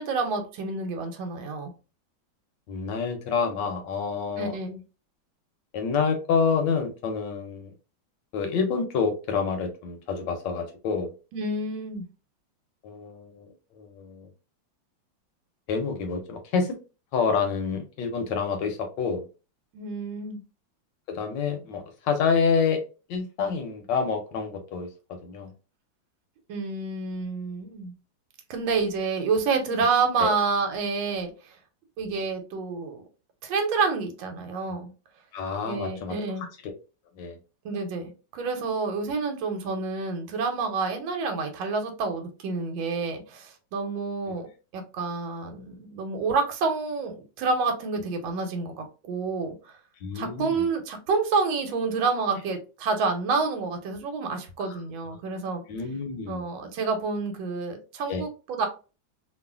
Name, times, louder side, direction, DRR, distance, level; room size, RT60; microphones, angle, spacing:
voice 1, 0.0-1.7 4.4-4.8 11.3-12.0 19.7-20.4 26.5-27.9 28.5-31.5 32.0-33.0 33.4-34.9 35.7-36.5 37.6-44.5 44.7-49.7 50.1-55.6 56.3-58.7, right 4 dB, 85° right, 1.4 m, -28 dB
voice 2, 2.7-4.6 5.7-7.7 8.3-11.1 12.8-13.5 13.7-14.3 15.7-16.7 17.1-19.2 21.1-22.8 23.1-24.9 25.2-25.5 30.2-30.3 35.3-36.1 36.6-36.7 37.2-37.4 50.0-50.6 54.6-54.8 55.1-55.2 55.7-56.5 58.1-58.2, left 5 dB, 75° left, 1.2 m, -28 dB
3.1 x 2.3 x 2.3 m
omnidirectional pair, 2.1 m